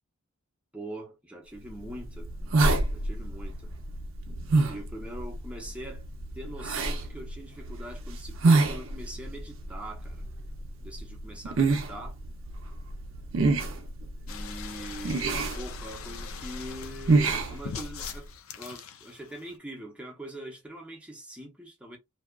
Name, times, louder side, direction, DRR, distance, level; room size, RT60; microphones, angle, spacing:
voice 1, 0.7-2.3 2.9-3.7 4.6-6.1 6.3-10.3 10.8-12.2 14.3-18.3 18.6-22.0, right 1 dB, 5° right, 0.6 m, -42 dB
sound 1, 1.6-18.2, right 3 dB, 60° right, 0.5 m, -29 dB
sound 2, 14.3-19.6, left 7 dB, 70° left, 0.4 m, -43 dB
2.6 x 2.3 x 2.2 m
head